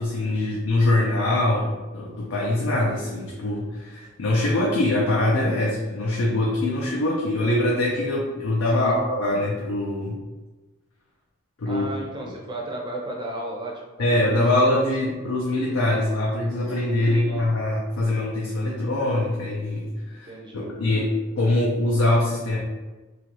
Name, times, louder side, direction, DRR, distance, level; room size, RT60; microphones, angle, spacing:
voice 1, 0.0-10.2 11.6-11.9 12.2-12.3 14.0-22.6, left 1 dB, 90° left, -4 dB, 0.5 m, -23 dB
voice 2, 11.6-14.4 15.0-15.1 17.0-17.4 20.3-20.7, right 1 dB, 20° right, -1 dB, 0.4 m, -35 dB
2.8 x 2.4 x 2.9 m, 1.2 s
head